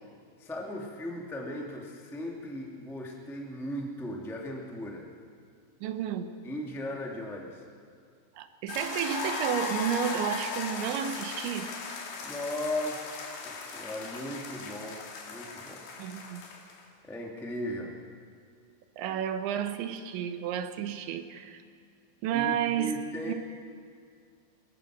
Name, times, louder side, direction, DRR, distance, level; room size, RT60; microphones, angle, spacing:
voice 1, 0.4-5.1 6.4-7.6 12.2-15.0 15.3-15.8 17.0-17.9 22.3-23.3, left 1 dB, ahead, -1 dB, 0.7 m, -37 dB
voice 2, 5.8-6.3 8.4-11.7 16.0-16.4 19.0-21.6 22.2-22.9 23.3-23.4, right 9 dB, 85° right, 9 dB, 3.4 m, -31 dB
sound 1, 8.7-16.8, left 4 dB, 65° left, 3.9 m, -37 dB
22.0 x 21.0 x 6.2 m, 2.2 s
omnidirectional pair, 5.1 m